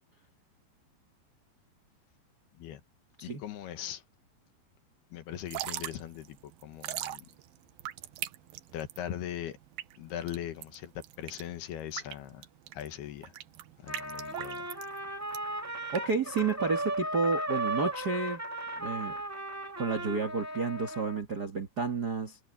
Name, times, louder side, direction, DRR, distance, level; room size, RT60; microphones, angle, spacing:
voice 1, 3.2-4.0 5.1-7.3 8.7-9.6 10.0-12.5 12.7-13.3 13.8-14.6, left 11 dB, 70° left, 3.4 m, -40 dB
Drip / Trickle dribble, 5.3-16.9, right 14 dB, 70° right, 2.4 m, -42 dB
Trumpet, 13.9-21.2, right 1 dB, 10° right, 0.7 m, -36 dB
voice 2, 15.9-18.4 18.8-19.2 19.8-22.4, right 4 dB, 55° right, 1.0 m, -31 dB
omnidirectional pair, 4.8 m